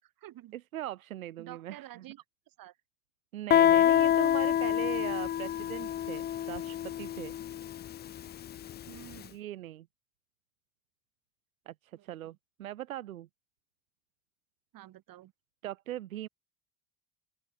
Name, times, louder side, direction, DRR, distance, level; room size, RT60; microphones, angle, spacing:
voice 1, 0.0-0.6 1.4-2.7 8.9-9.4 11.9-12.1 14.7-15.3, right 14 dB, 55° right, 7.9 m, -50 dB
voice 2, 0.5-2.0 3.3-7.3 9.3-9.9 11.7-13.3 15.6-16.3, right 13 dB, 90° right, 1.2 m, -40 dB
Guitar, 3.5-9.0, left 11 dB, 25° left, 0.4 m, -27 dB
open air
hypercardioid pair, 75°, 40 cm